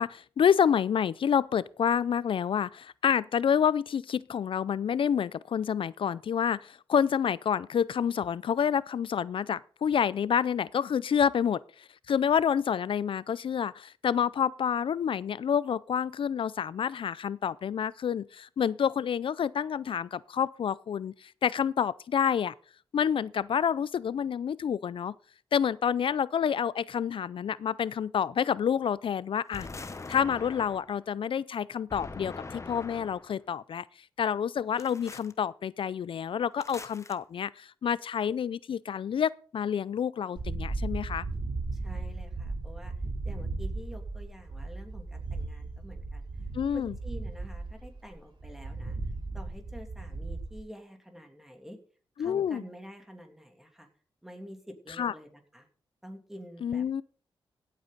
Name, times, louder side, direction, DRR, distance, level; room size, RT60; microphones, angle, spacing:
voice 1, 0.0-22.5 22.9-25.1 25.5-29.7 30.1-33.8 34.2-41.3 46.5-46.9 52.2-52.6 55.0-55.1 56.6-57.0, left 8 dB, 65° left, 0.4 m, -28 dB
sound 1, 29.5-31.0 31.9-33.4 34.8-35.3 36.6-37.1, left 3 dB, 30° left, 1.0 m, -42 dB
sound 2, 40.4-50.6, right 3 dB, 55° right, 3.1 m, -36 dB
voice 2, 41.7-42.9 43.2-46.3 46.7-49.0 49.3-51.8 52.2-53.9 54.2-55.7 56.0-56.8, equal, 5° right, 2.8 m, -47 dB
16.0 x 8.4 x 4.0 m
cardioid pair, 75°, 10 cm